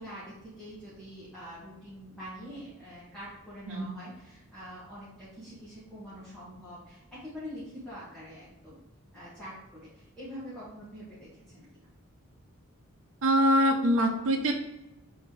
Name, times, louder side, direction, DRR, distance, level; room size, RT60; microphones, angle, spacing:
voice 1, 0.0-8.8 9.1-11.9, equal, 5° left, -11 dB, 1.9 m, -45 dB
voice 2, 13.2-14.5, equal, 60° right, 1 dB, 0.8 m, -24 dB
4.3 x 4.2 x 5.5 m, 0.94 s
head